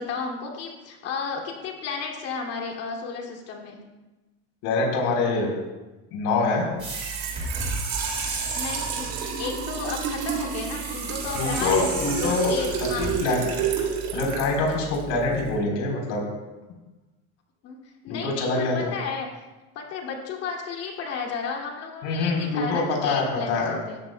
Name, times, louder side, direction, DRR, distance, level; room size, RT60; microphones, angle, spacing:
voice 1, 0.0-3.8 8.5-11.9 12.2-13.1 17.6-17.8 18.0-19.3 19.7-24.0, left 5 dB, 45° left, 0 dB, 2.5 m, -33 dB
voice 2, 4.6-5.5 6.1-6.7 11.3-12.5 13.0-13.4 13.7-13.8 14.1-16.2 18.1-18.9 22.0-23.8, left 3 dB, 65° left, -1 dB, 4.0 m, -25 dB
sound 1, 6.8-9.2 10.5-13.1, right 2 dB, 20° right, 2.7 m, -33 dB
Trickle dribble / Fill (with liquid), 6.8-15.6, right 7 dB, 65° right, 3.1 m, -31 dB
18.5 x 13.5 x 2.3 m, 1.1 s
cardioid pair, 170°, 33 cm